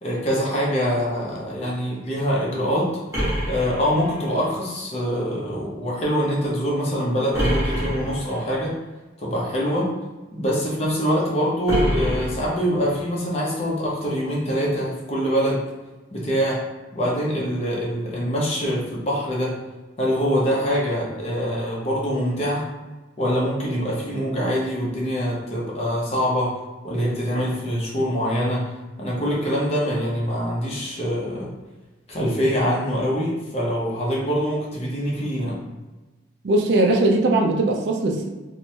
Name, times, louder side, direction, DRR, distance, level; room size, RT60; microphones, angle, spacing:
voice 1, 0.0-2.9 3.5-8.7 9.2-9.9 10.3-15.6 16.1-16.6 16.9-19.5 20.0-22.7 23.2-26.5 26.8-28.6 29.0-31.5 32.1-35.6, equal, 35° left, -4 dB, 0.6 m, -24 dB
sound 1, 3.1-4.5 7.3-8.5 11.7-13.0, equal, 15° right, 1.0 m, -26 dB
voice 2, 36.4-38.3, right 2 dB, 60° right, 1 dB, 0.3 m, -19 dB
3.0 x 2.1 x 2.7 m, 1.2 s
head